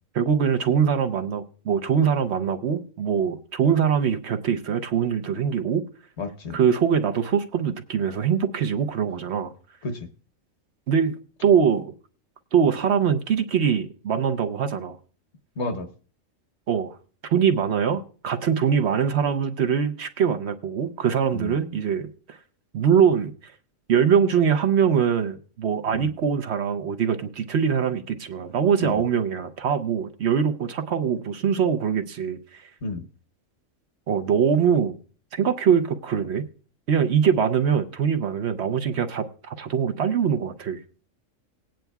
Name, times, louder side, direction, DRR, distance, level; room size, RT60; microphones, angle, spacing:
voice 1, 0.1-5.8 6.5-9.5 10.9-11.1 11.4-11.9 12.5-15.0 16.7-17.0 17.3-22.4 22.7-23.5 23.9-32.6 34.1-34.9 35.3-36.4 36.9-40.8, right 7 dB, 60° right, 0.9 m, -23 dB
voice 2, 6.2-6.6 9.8-10.0 15.6-15.9 21.3-21.5 25.9-26.1 28.8-29.0 32.8-33.0, left 2 dB, 60° left, 1.2 m, -31 dB
19.0 x 9.0 x 2.3 m
omnidirectional pair, 1.4 m